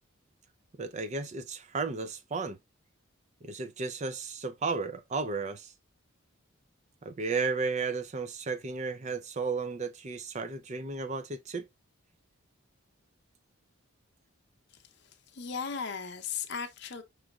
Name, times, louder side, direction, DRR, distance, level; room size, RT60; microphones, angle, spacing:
voice 1, 0.8-2.6 3.4-5.7 7.0-11.7, right 4 dB, 35° right, 0.4 m, -34 dB
voice 2, 15.3-17.0, left 6 dB, 55° left, 0.7 m, -36 dB
6.1 x 3.1 x 2.3 m
head